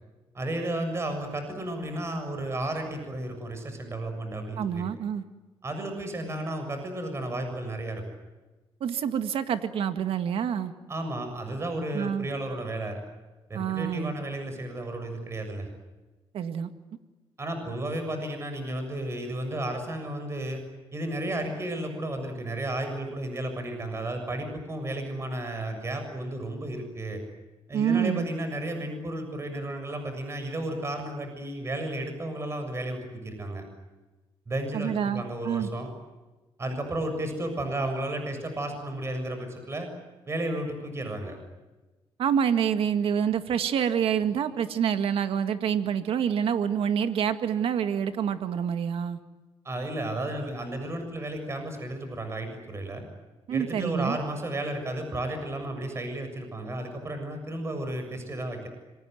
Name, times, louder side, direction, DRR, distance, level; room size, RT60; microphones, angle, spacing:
voice 1, 0.3-4.9 5.6-8.0 10.9-13.0 13.5-15.7 17.4-20.6 20.9-27.2 27.7-33.6 34.5-35.9 36.6-39.9 40.3-41.4 49.6-53.0 53.5-58.7, right 1 dB, 30° right, 6 dB, 7.0 m, -33 dB
voice 2, 4.6-5.2 8.8-10.7 11.9-12.3 13.5-14.2 16.3-16.7 27.7-28.3 34.7-35.7 42.2-49.2 53.5-54.2, right 8 dB, 70° right, 9 dB, 1.9 m, -27 dB
26.5 x 24.0 x 9.3 m, 1.2 s
cardioid pair, 115°, 10 cm